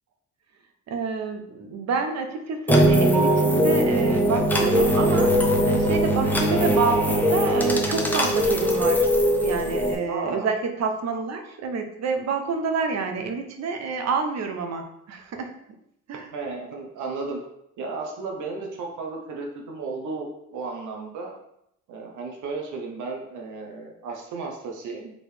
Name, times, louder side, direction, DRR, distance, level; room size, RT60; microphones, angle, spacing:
voice 1, 0.9-9.1 9.4-15.5 16.1-16.3, right 4 dB, 60° right, 5 dB, 0.8 m, -28 dB
sound 1, 2.7-9.9, equal, 5° left, 0.8 m, -20 dB
voice 2, 10.1-10.5 16.3-17.4 17.8-21.3 21.9-25.1, right 4 dB, 80° right, 1 dB, 1.0 m, -34 dB
5.2 x 3.1 x 3.4 m, 0.78 s
cardioid pair, 90°, 30 cm